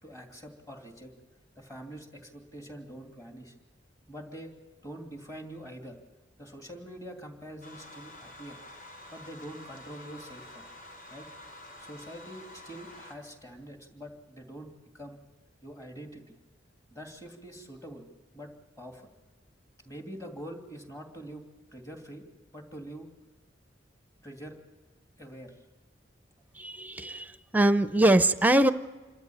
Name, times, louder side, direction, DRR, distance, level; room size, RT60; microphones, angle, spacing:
voice 1, 0.0-1.1 1.6-3.5 4.1-4.6 4.8-6.0 6.4-8.6 9.1-10.6 11.1-11.3 11.8-15.2 15.6-16.4 16.9-18.1 18.3-19.1 19.8-21.4 21.7-22.2 22.5-23.1 24.2-24.6 25.2-25.6, right 1 dB, 20° left, 3 dB, 2.8 m, -45 dB
sound 1, 7.6-13.1, left 1 dB, 50° left, 4.9 m, -48 dB
voice 2, 26.6-28.7, right 1 dB, 10° right, 11 dB, 0.7 m, -23 dB
27.0 x 13.5 x 8.9 m, 1.2 s
head